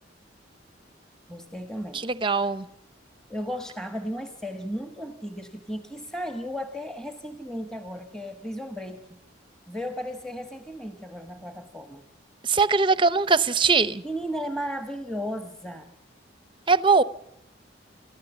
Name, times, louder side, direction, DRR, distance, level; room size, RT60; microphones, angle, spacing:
voice 1, 1.3-2.1 3.3-9.0 9.7-12.0 14.0-15.9, equal, 5° left, 1.2 m, -35 dB
voice 2, 1.9-2.7 12.4-14.0 16.7-17.0, right 4 dB, 25° right, 0.7 m, -21 dB
28.5 x 14.0 x 7.0 m
head